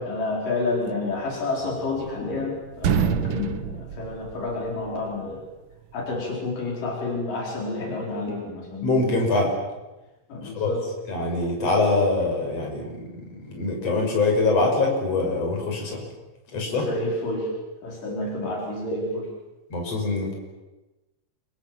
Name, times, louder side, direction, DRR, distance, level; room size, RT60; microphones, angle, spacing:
voice 1, 0.0-5.4 5.9-9.1 10.3-10.9 16.7-17.5 17.8-19.3, left 2 dB, 75° left, -1 dB, 6.2 m, -29 dB
sound 1, 1.6-2.4 2.7-4.9, right 8 dB, 90° right, 1.1 m, -27 dB
voice 2, 8.8-9.5 10.6-10.7 11.1-12.9 13.4-16.0 16.5-16.9 19.7-20.3, left 3 dB, 45° left, 1 dB, 7.0 m, -23 dB
30.0 x 24.0 x 7.8 m, 1.1 s
omnidirectional pair, 3.8 m